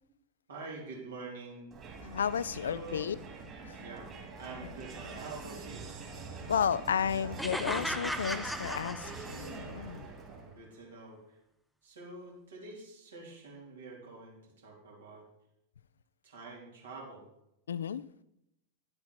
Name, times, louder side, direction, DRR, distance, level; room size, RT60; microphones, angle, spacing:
voice 1, 0.5-1.7 2.6-3.1 3.8-5.9 10.3-11.4 11.8-15.2 16.2-17.2, right 3 dB, 65° right, -3 dB, 3.3 m, -46 dB
Crowd, 1.7-10.6, right 4 dB, 25° right, 2.8 m, -45 dB
voice 2, 2.0-3.2 3.7-3.8 6.5-10.1 17.7-18.0, left 8 dB, 65° left, 18 dB, 0.4 m, -32 dB
sound 1, 7.4-9.7, equal, ahead, 0.6 m, -36 dB
10.5 x 7.8 x 4.3 m, 0.82 s
figure-of-eight pair, 90°, 0 cm